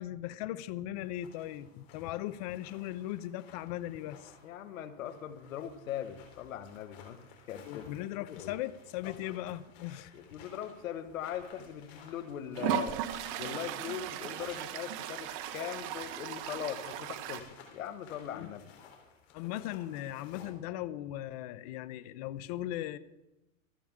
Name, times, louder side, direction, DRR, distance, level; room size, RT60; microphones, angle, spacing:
voice 1, 0.0-4.3 7.7-10.1 18.3-18.5 19.3-23.0, left 14 dB, 30° left, 17 dB, 0.4 m, -38 dB
sound 1, 0.9-20.5, left 6 dB, 50° left, 3.6 m, -57 dB
voice 2, 4.4-7.2 7.5-7.9 8.3-8.5 9.0-9.4 10.1-13.0 13.4-17.5 17.7-18.7, left 10 dB, 75° left, 10 dB, 1.6 m, -40 dB
Toilet flush, 11.6-11.7 12.6-17.4, right 11 dB, 30° right, 0.9 m, -37 dB
25.5 x 8.6 x 3.6 m, 0.95 s
supercardioid pair, 150°, 41 cm